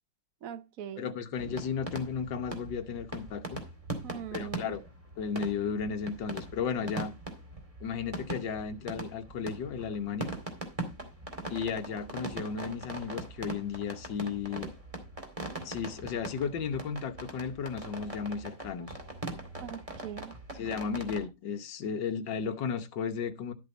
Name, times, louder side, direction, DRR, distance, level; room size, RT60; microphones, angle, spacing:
voice 1, 0.4-1.2 4.0-4.7 19.6-20.4, right 9 dB, 55° right, 1.2 m, -41 dB
voice 2, 1.0-3.6 4.3-4.8 5.2-7.1 7.8-10.3 11.5-14.7 15.6-19.0 20.5-23.5, left 6 dB, 70° left, 1.7 m, -34 dB
sound 1, 1.4-21.3, right 2 dB, 20° right, 2.2 m, -41 dB
12.0 x 7.4 x 4.0 m
omnidirectional pair, 2.0 m